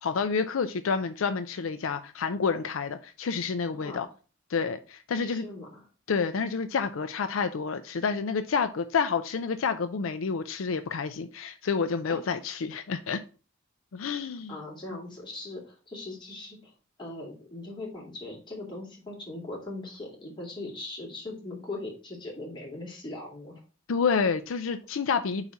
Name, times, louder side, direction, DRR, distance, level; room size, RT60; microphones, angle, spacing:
voice 1, 0.0-4.1 4.5-5.5 6.1-13.2 13.9-14.6 23.9-25.5, left 5 dB, 80° left, 9 dB, 0.5 m, -29 dB
voice 2, 3.7-4.1 5.2-5.8 12.1-12.2 14.2-16.7 17.0-23.6, left 2 dB, 25° left, -3 dB, 2.4 m, -40 dB
4.9 x 4.1 x 5.7 m, 0.36 s
head